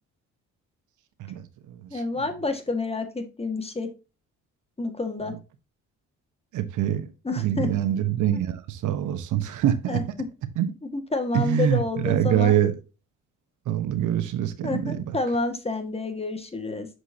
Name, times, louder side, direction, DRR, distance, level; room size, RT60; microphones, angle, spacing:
voice 1, 1.2-2.0 6.5-7.1 7.4-10.0 10.6-10.7 11.3-12.8 13.7-15.0, right 10 dB, 80° right, 1.1 m, -25 dB
voice 2, 1.9-3.9 4.8-5.3 7.2-7.7 9.9-10.0 10.9-12.5 14.6-16.9, left 3 dB, 20° left, 1.8 m, -29 dB
7.9 x 6.3 x 2.8 m
cardioid pair, 90°, 30 cm